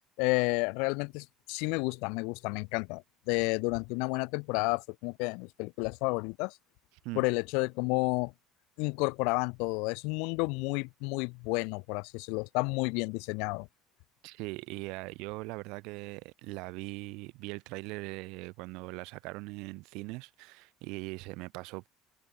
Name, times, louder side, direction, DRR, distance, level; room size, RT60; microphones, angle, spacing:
voice 1, 0.2-6.6 7.2-8.3 8.8-13.7, left 31 dB, 80° left, 0.3 m, -31 dB
voice 2, 14.2-21.9, right 25 dB, 70° right, 1.4 m, -40 dB
cardioid pair, 175°, 0 cm